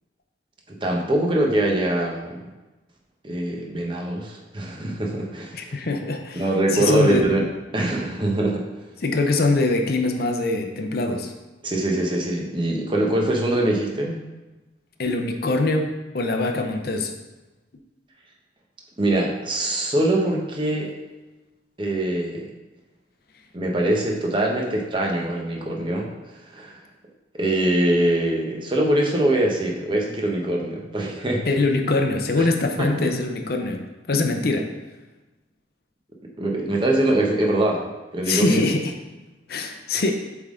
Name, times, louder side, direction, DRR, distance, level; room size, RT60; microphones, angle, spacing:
voice 1, 0.7-2.4 3.2-5.8 6.3-7.5 7.7-8.6 11.6-14.2 19.0-20.9 21.8-22.5 23.5-26.1 26.5-26.8 27.3-31.4 32.3-32.5 32.8-33.1 36.4-37.8 38.1-38.7, right 1 dB, 25° right, 0 dB, 0.8 m, -23 dB
voice 2, 5.5-6.4 6.7-7.3 9.0-11.3 15.0-17.1 31.5-33.8 34.1-34.7 38.3-38.9 39.5-40.1, left 2 dB, 55° left, 5 dB, 0.6 m, -23 dB
7.7 x 3.6 x 3.7 m, 1.1 s
head